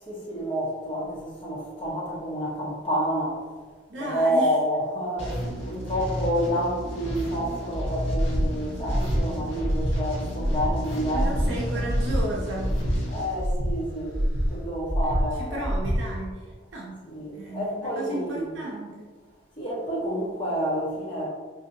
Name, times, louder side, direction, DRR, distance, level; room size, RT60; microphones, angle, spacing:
voice 1, 0.1-3.4 4.0-11.6 13.1-14.2 14.5-15.7 17.0-18.6 19.6-21.3, equal, 25° left, -5 dB, 0.8 m, -29 dB
voice 2, 3.9-4.5 11.1-12.9 15.4-17.1 17.3-19.1, right 1 dB, 75° right, -3 dB, 0.5 m, -34 dB
sound 1, 5.2-14.0, equal, 75° left, 1.3 m, -33 dB
Breathing, 8.1-8.5 8.8-9.2 9.6-10.0 10.3-10.7 11.1-11.5 11.8-12.2 12.6-13.0 13.3-13.7 14.1-14.5 14.9-15.2 15.6-16.0, equal, 55° right, 1.0 m, -25 dB
4.3 x 2.6 x 2.6 m, 1.4 s
head